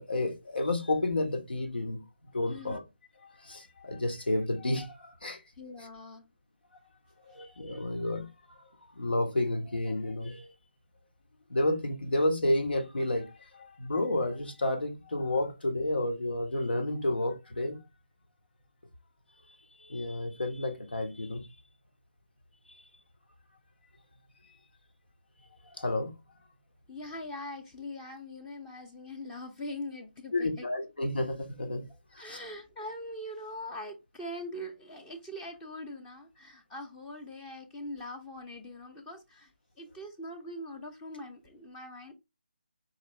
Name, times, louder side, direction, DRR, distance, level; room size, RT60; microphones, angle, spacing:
voice 1, 0.0-2.0 2.3-2.8 3.2-5.4 7.3-8.7 8.9-10.5 11.5-17.8 19.8-21.5 25.8-26.1 30.3-31.9 32.1-32.4, left 1 dB, 70° left, 1.4 m, -31 dB
voice 2, 5.6-6.2 26.9-30.7 32.2-39.5 39.8-42.1, left 1 dB, 10° left, 0.7 m, -42 dB
4.7 x 3.4 x 3.2 m
figure-of-eight pair, 150°, 6 cm